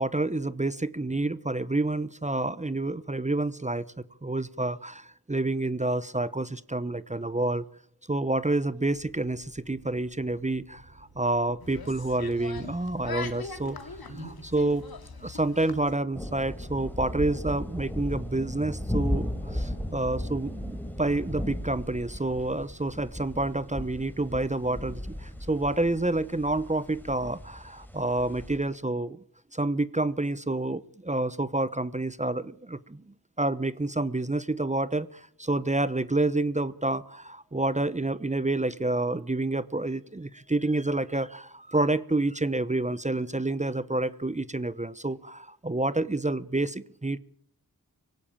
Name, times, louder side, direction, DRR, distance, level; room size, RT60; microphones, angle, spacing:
voice 1, 0.0-3.9 4.2-7.7 8.1-14.8 15.2-29.2 29.5-47.2, right 2 dB, 20° right, 16 dB, 0.9 m, -28 dB
sound 1, 8.9-26.4, right 2 dB, 50° right, 6.9 m, -53 dB
sound 2, 11.6-15.9, left 4 dB, 85° left, 2.4 m, -41 dB
sound 3, 16.1-28.6, left 1 dB, 5° left, 4.2 m, -36 dB
24.5 x 17.5 x 8.8 m, 0.64 s
wide cardioid pair, 50°, 36 cm